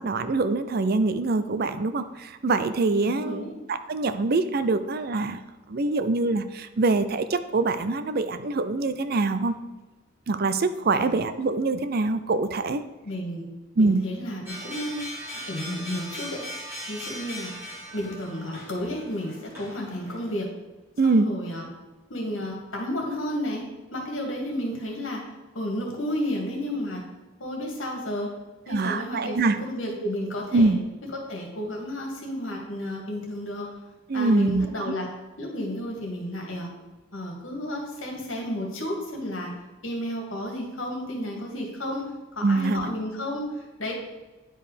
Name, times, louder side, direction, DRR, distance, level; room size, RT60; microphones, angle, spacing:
voice 1, 0.0-5.4 5.7-9.5 10.3-12.8 13.8-14.0 21.0-21.3 28.7-29.6 30.5-30.8 34.1-34.9 42.4-42.9, right 3 dB, 50° right, 11 dB, 0.5 m, -24 dB
voice 2, 3.0-3.5 10.9-11.2 13.0-13.4 13.8-15.0 15.4-16.4 16.9-17.5 17.9-20.5 21.0-21.7 22.1-23.6 23.9-25.2 25.5-27.0 27.4-28.3 28.7-30.7 31.1-33.7 34.1-35.1 35.4-36.7 37.1-39.5 39.8-43.9, left 1 dB, 70° left, 0 dB, 2.2 m, -32 dB
sound 1, 14.5-20.3, equal, 10° right, 2.7 m, -39 dB
10.0 x 4.7 x 5.0 m, 1.2 s
head